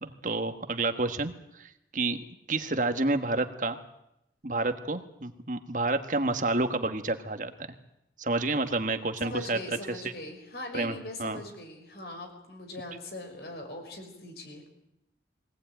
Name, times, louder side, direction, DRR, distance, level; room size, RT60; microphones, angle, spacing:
voice 1, 0.0-2.2 2.5-3.8 4.4-7.5 8.2-10.0 10.7-11.4, right 2 dB, 45° right, 7 dB, 1.4 m, -29 dB
voice 2, 9.2-14.6, left 1 dB, 65° left, 4 dB, 5.6 m, -41 dB
22.5 x 18.0 x 9.1 m, 0.84 s
head